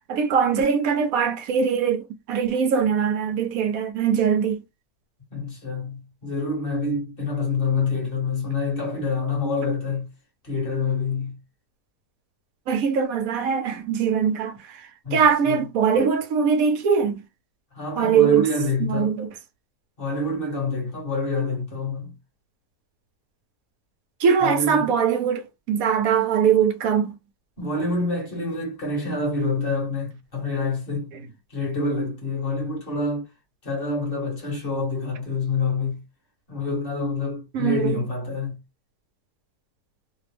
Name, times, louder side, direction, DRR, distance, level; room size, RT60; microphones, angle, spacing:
voice 1, 0.1-4.6 12.7-14.8 15.1-17.2 18.0-18.4 18.8-19.3 24.2-27.2 37.5-38.0, right 7 dB, 65° right, 1.0 m, -22 dB
voice 2, 5.3-10.1 10.4-11.4 15.0-15.6 17.7-19.1 20.0-22.1 24.4-24.9 27.6-31.1 31.5-33.3 33.6-36.0 36.5-38.6, left 3 dB, 35° left, 1.6 m, -27 dB
3.4 x 2.2 x 3.4 m
omnidirectional pair, 1.8 m